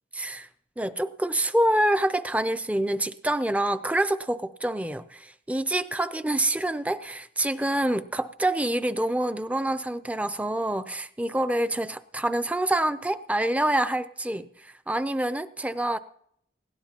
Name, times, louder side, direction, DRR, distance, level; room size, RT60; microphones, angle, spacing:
voice 1, 0.1-0.5 0.8-16.0, right 1 dB, 10° right, 12 dB, 0.4 m, -26 dB
19.0 x 17.0 x 2.9 m, 0.71 s
head